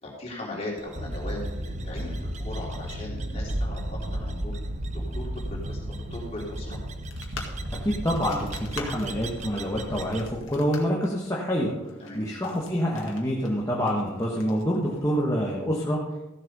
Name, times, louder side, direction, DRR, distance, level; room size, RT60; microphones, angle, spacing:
voice 1, 0.0-4.6 4.9-6.8 12.0-12.2, left 1 dB, 30° left, -4 dB, 3.9 m, -38 dB
sound 1, 0.8-10.3, right 2 dB, 35° right, 0.7 m, -40 dB
sound 2, 0.9-11.0, equal, 80° right, 1.5 m, -35 dB
sound 3, 7.1-15.3, left 4 dB, 85° left, 1.9 m, -45 dB
voice 2, 7.8-16.0, equal, 15° left, -3 dB, 1.4 m, -27 dB
14.5 x 7.4 x 5.4 m, 1.0 s
head